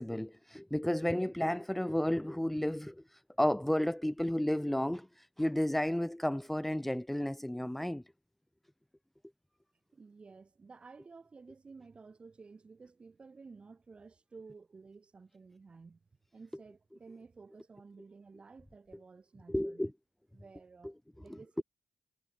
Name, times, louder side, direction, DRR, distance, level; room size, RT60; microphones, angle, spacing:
voice 1, 0.0-3.0 3.4-8.0 19.5-19.9 21.3-21.4, left 1 dB, 5° left, 0.7 m, -32 dB
voice 2, 9.9-16.0 16.3-19.9 20.3-21.6, right 4 dB, 45° right, 3.7 m, -54 dB
supercardioid pair, 50°, 3 cm